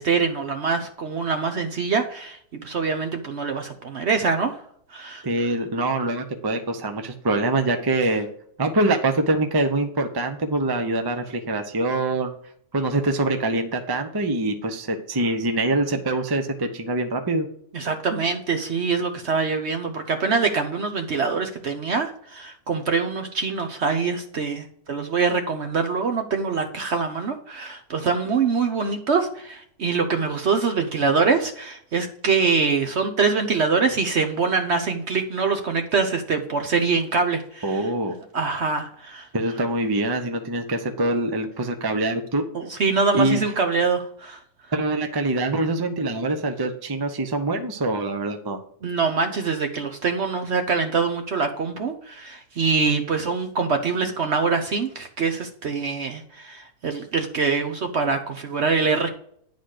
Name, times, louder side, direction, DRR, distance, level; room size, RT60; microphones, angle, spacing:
voice 1, 0.0-4.6 4.9-5.2 15.9-16.0 17.7-37.9 38.3-39.3 42.5-44.4 48.8-59.1, right 4 dB, 50° right, 6 dB, 0.9 m, -24 dB
voice 2, 5.2-8.3 8.6-12.3 12.7-17.5 37.6-38.2 39.3-42.4 43.1-43.4 44.7-48.6, right 2 dB, 25° right, 6 dB, 0.5 m, -24 dB
10.0 x 4.1 x 6.4 m, 0.64 s
omnidirectional pair, 1.7 m